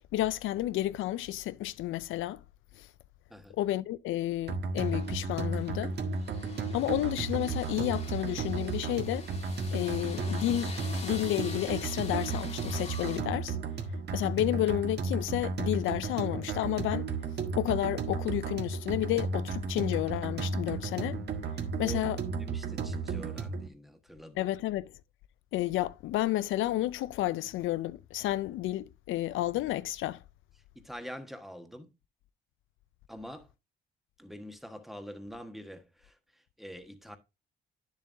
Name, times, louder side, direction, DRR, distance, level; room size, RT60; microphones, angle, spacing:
voice 1, 0.1-2.4 2.7-2.9 3.5-6.0 6.7-9.3 9.7-10.7 11.0-13.6 14.1-17.1 17.6-21.2 21.8-22.2 24.4-24.9 25.5-30.2, left 14 dB, 80° left, 0.4 m, -31 dB
sound 1, 4.5-23.7, right 4 dB, 55° right, 1.7 m, -34 dB
sound 2, 4.8-13.2, left 4 dB, 35° left, 2.0 m, -46 dB
voice 2, 22.4-24.5 30.7-31.9 33.1-33.5 34.2-37.2, equal, ahead, 1.4 m, -45 dB
9.7 x 7.3 x 2.7 m
cardioid pair, 90°, 20 cm